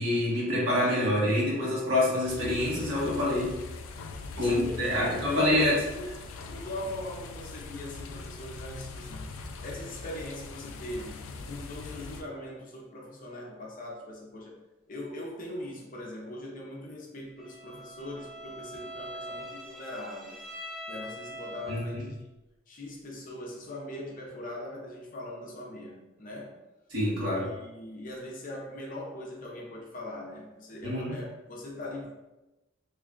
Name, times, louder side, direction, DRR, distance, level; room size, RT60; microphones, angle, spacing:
voice 1, 0.0-3.5 4.4-5.8 21.7-22.0 26.9-27.5 30.8-31.2, left 1 dB, 70° right, -6 dB, 1.4 m, -26 dB
sound 1, 2.2-12.2, left 3 dB, 85° left, 0.4 m, -42 dB
voice 2, 4.3-9.3 9.6-14.6 14.9-20.4 20.9-22.2 22.7-26.6 27.3-32.1, left 1 dB, 40° left, -1 dB, 0.6 m, -41 dB
Bowed string instrument, 17.4-22.1, equal, ahead, 0.5 m, -43 dB
3.1 x 2.3 x 3.7 m, 1.0 s
head